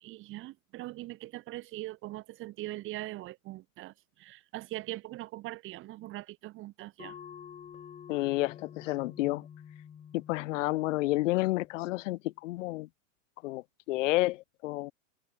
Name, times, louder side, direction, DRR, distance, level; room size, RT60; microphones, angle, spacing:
voice 1, 0.0-3.9 4.2-7.1, right 17 dB, 30° right, 1.5 m, -41 dB
sound 1, 7.0-12.1, left 8 dB, 15° left, 1.8 m, -49 dB
voice 2, 8.1-9.5 10.1-12.9 13.4-14.9, left 19 dB, 65° left, 0.5 m, -30 dB
hypercardioid pair, 135°, 41 cm